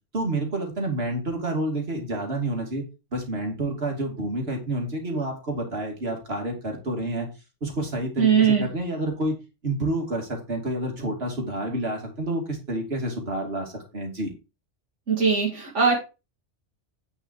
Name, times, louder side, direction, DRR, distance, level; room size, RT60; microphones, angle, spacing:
voice 1, 0.1-2.8 3.1-7.3 7.6-9.3 9.6-14.3, right 1 dB, 55° right, 2 dB, 2.9 m, -29 dB
voice 2, 8.2-8.7 15.1-16.0, right 6 dB, 75° right, -3 dB, 2.5 m, -20 dB
9.5 x 5.5 x 4.7 m, 0.28 s
omnidirectional pair, 1.3 m